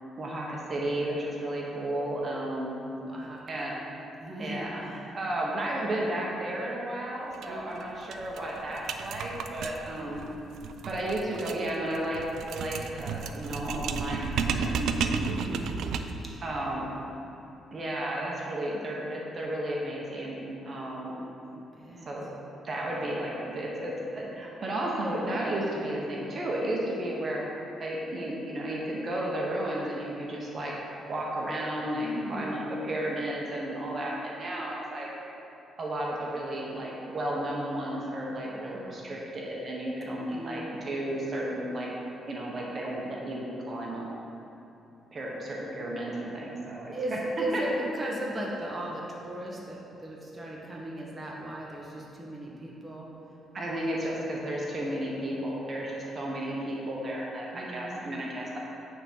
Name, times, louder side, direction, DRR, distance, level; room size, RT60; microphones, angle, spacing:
voice 1, 0.2-2.8 3.5-3.8 4.4-4.8 5.1-10.2 10.9-12.2 12.5-14.9 16.4-16.9 17.7-21.2 22.1-22.3 22.6-27.4 27.8-30.7 31.1-35.1 35.8-41.9 42.2-44.1 45.1-47.6 53.5-58.6, right 1 dB, 40° right, -3 dB, 1.0 m, -33 dB
voice 2, 3.0-3.6 4.2-5.1 7.5-7.8 9.9-10.2 15.2-15.9 16.4-17.0 21.5-22.1 32.0-32.6 38.7-39.1 40.3-41.1 46.9-53.1 57.5-58.1, right 1 dB, 20° right, -3 dB, 1.0 m, -37 dB
sound 1, 7.3-7.5 7.8-7.9 8.1-16.3, right 6 dB, 75° right, 0.3 m, -33 dB
8.8 x 3.6 x 4.3 m, 2.9 s
cardioid pair, 90°, 0 cm